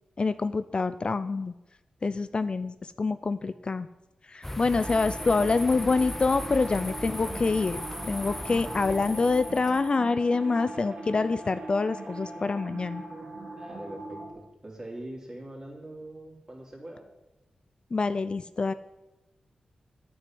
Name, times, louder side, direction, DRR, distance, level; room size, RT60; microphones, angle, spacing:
voice 1, 0.2-1.5 2.0-3.9 4.3-7.8 8.1-13.0 17.9-18.7, left 4 dB, 45° left, 13 dB, 0.4 m, -26 dB
sound 1, 4.4-9.9, left 1 dB, 10° left, 0.7 m, -37 dB
sound 2, 4.8-14.3, right 2 dB, 60° right, 2.5 m, -41 dB
voice 2, 13.5-17.0, right 1 dB, 30° right, -1 dB, 3.2 m, -43 dB
9.7 x 6.3 x 7.7 m, 0.98 s
cardioid pair, 60°, 2 cm